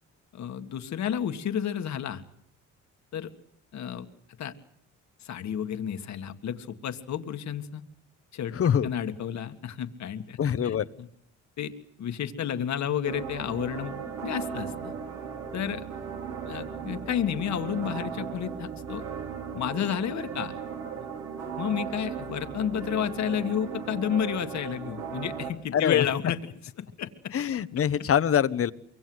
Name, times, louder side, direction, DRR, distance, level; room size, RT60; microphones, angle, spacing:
voice 1, 0.3-2.2 3.1-3.3 3.7-4.1 4.4-4.5 5.2-7.8 8.3-8.6 8.8-10.4 10.6-11.1 11.6-11.7 12.0-14.0 14.2-14.9 15.5-15.8 16.4-19.0 19.5-20.6 21.0-21.1 21.6-26.5 26.8-27.3, left 9 dB, 65° left, 7 dB, 1.8 m, -31 dB
voice 2, 8.5-8.9 10.4-10.9 25.7-26.0 27.3-28.7, left 8 dB, 50° left, 15 dB, 1.1 m, -24 dB
sound 1, 13.0-25.5, right 7 dB, 65° right, 5.4 m, -37 dB
24.5 x 23.5 x 8.0 m, 0.72 s
cardioid pair, 90°, 30 cm